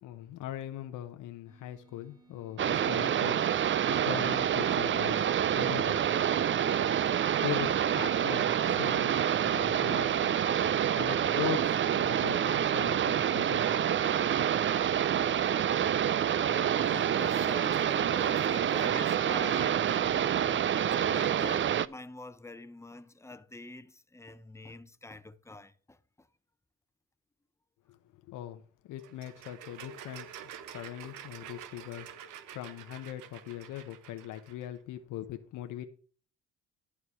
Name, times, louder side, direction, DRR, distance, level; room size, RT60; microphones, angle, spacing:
voice 1, 0.0-6.0 7.4-10.4 10.9-14.3 27.9-35.8, left 12 dB, 90° left, 1.0 m, -41 dB
sound 1, 1.5-6.8, right 5 dB, 15° right, 2.6 m, -62 dB
sound 2, 2.6-21.9, right 9 dB, 40° right, 0.5 m, -27 dB
voice 2, 16.5-26.3, left 2 dB, 10° left, 0.9 m, -46 dB
sound 3, 29.0-34.7, right 9 dB, 90° right, 1.2 m, -48 dB
11.5 x 4.7 x 7.0 m
cardioid pair, 90°, 30 cm